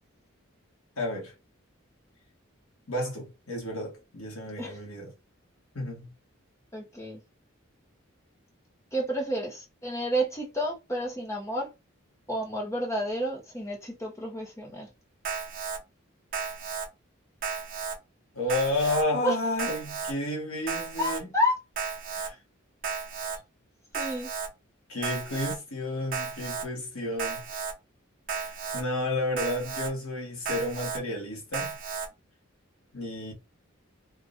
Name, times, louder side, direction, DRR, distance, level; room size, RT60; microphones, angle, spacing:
voice 1, 1.0-1.3 2.9-5.1 5.7-6.0 18.3-21.3 22.1-22.4 24.9-27.4 28.4-31.8 32.9-33.3, left 1 dB, 90° left, 1.4 m, -31 dB
voice 2, 6.7-7.2 8.9-11.7 12.3-14.9 19.2-19.3 21.0-21.6 23.9-24.3, equal, 15° left, 0.8 m, -30 dB
Alarm, 15.2-15.8 16.3-16.9 17.4-18.0 18.5-19.0 19.6-20.1 20.7-21.2 21.8-22.3 22.8-23.4 23.9-24.5 25.0-25.6 26.1-26.7 27.2-27.7 28.3-28.8 29.4-29.9 30.5-31.0 31.5-32.1, right 5 dB, 40° right, 0.7 m, -33 dB
3.5 x 2.4 x 2.5 m
head